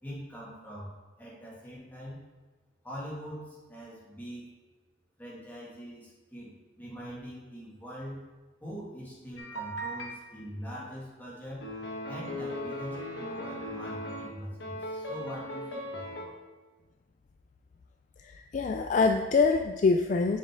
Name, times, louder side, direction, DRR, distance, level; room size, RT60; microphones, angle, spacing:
voice 1, 0.0-0.9 1.2-2.2 2.8-4.5 5.2-8.2 8.6-11.7 12.1-16.3, equal, 10° left, -6 dB, 2.3 m, -43 dB
sound 1, 9.4-10.2 11.6-14.3 14.6-16.3, equal, 80° left, 1.3 m, -38 dB
voice 2, 18.2-20.4, left 4 dB, 40° left, 4 dB, 0.3 m, -25 dB
6.7 x 6.2 x 3.8 m, 1.3 s
head